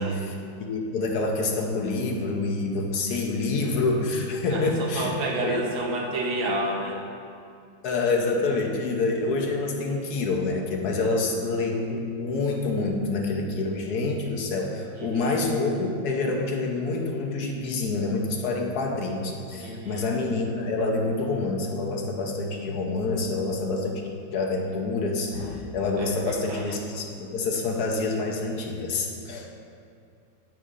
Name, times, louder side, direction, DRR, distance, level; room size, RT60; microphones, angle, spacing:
voice 1, 0.0-5.1 5.4-5.6 7.8-24.0 24.3-29.5, left 3 dB, 60° left, 1 dB, 1.2 m, -27 dB
voice 2, 4.5-7.0 14.9-15.4 19.6-20.1 26.0-26.8, right 2 dB, 90° right, -1 dB, 1.9 m, -30 dB
9.9 x 9.3 x 2.5 m, 2.5 s
omnidirectional pair, 2.1 m